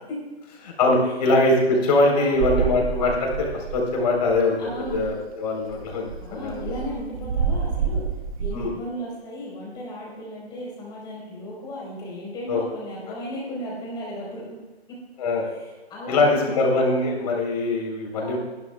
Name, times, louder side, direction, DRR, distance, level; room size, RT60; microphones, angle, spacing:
voice 1, 0.6-3.5 3.7-6.7 8.5-8.7 12.5-12.6 15.2-15.5 16.1-18.4, left 2 dB, 40° left, 0 dB, 3.9 m, -22 dB
voice 2, 2.1-2.7 4.6-5.0 6.2-8.0 8.4-14.6 14.9-15.0 15.4-16.6 18.2-18.4, equal, 15° left, -5 dB, 4.4 m, -35 dB
sound 1, 2.3-4.0 4.3-4.4 4.7-5.2 5.7-8.7, right 6 dB, 35° right, 1.0 m, -28 dB
22.5 x 11.5 x 2.3 m, 1.2 s
hypercardioid pair, 155°, 32 cm